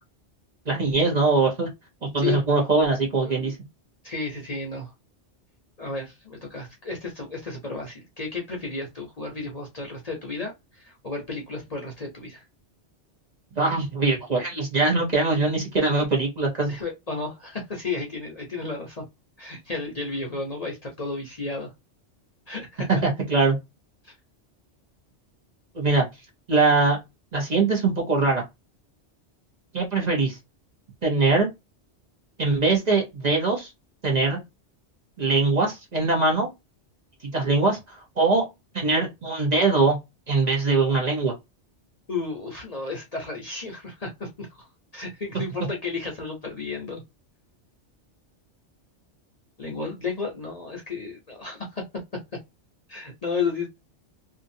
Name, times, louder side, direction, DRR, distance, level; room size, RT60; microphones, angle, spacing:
voice 1, 0.7-1.7 2.0-3.6 13.6-16.8 22.9-23.6 25.7-26.1 26.5-27.0 27.3-28.4 29.7-30.4 31.0-31.5 32.4-33.7 34.0-34.4 35.2-36.5 37.2-38.5 38.7-40.0 40.3-41.3, right 3 dB, 40° right, 1.0 m, -22 dB
voice 2, 4.0-4.9 5.8-12.4 16.7-19.0 19.4-21.7 22.5-22.9 24.0-24.1 42.1-44.7 44.9-47.0 49.6-51.8 52.9-53.7, left 4 dB, 40° left, 0.8 m, -33 dB
2.9 x 2.5 x 2.6 m
omnidirectional pair, 1.2 m